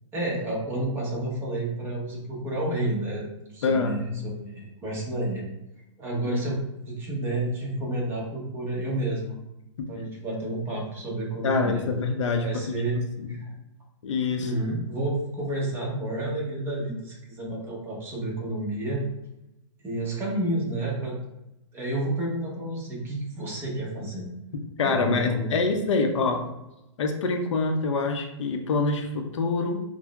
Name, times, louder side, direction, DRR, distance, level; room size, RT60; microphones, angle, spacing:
voice 1, 0.1-5.4 6.0-9.4 9.9-11.8 12.4-13.0 13.3-13.5 14.4-19.0 19.8-21.2 21.7-24.3 24.8-25.8, right 2 dB, 15° right, -3 dB, 0.8 m, -30 dB
voice 2, 3.6-4.2 6.3-6.4 9.8-9.9 11.4-12.8 13.2-13.4 14.0-14.5 24.8-26.4 27.0-29.8, left 4 dB, 75° left, 4 dB, 0.6 m, -25 dB
5.9 x 2.0 x 2.3 m, 0.92 s
hypercardioid pair, 150°, 16 cm